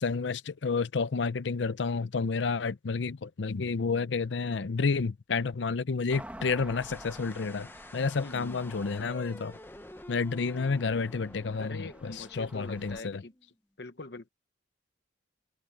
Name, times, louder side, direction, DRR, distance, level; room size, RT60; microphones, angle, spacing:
voice 1, 0.0-9.6 10.1-13.2, left 4 dB, 80° left, 0.6 m, -30 dB
sound 1, 6.1-13.0, right 1 dB, 10° right, 1.8 m, -50 dB
sound 2, 6.7-13.5, left 1 dB, 10° left, 0.6 m, -50 dB
voice 2, 8.2-8.6 11.6-13.3 13.8-14.3, left 3 dB, 60° left, 0.9 m, -42 dB
head